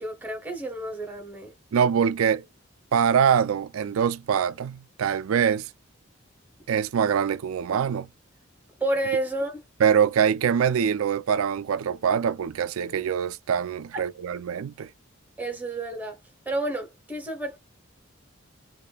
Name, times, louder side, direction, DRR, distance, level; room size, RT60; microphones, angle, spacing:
voice 1, 0.0-1.5 8.8-9.6 13.9-14.0 15.4-16.2 16.4-17.6, right 2 dB, 10° right, 1.2 m, -30 dB
voice 2, 1.7-2.5 2.9-5.7 6.7-8.1 9.8-14.9, right 7 dB, 85° right, 0.4 m, -24 dB
4.9 x 2.6 x 2.2 m
head